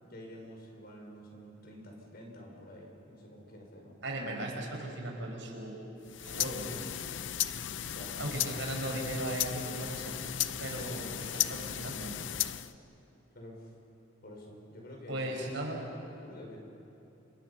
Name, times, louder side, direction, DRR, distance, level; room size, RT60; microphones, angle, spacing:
voice 1, 0.0-4.0 7.9-8.2 13.3-13.7 14.2-15.4 16.2-16.6, equal, 55° left, 0 dB, 5.7 m, -49 dB
voice 2, 4.0-5.8 6.2-6.7 8.2-10.1 10.6-12.1 15.1-15.8, right 1 dB, 70° right, 0 dB, 5.4 m, -37 dB
sound 1, 6.0-12.7, left 11 dB, 70° left, 0.6 m, -35 dB
30.0 x 27.5 x 5.8 m, 2.8 s
head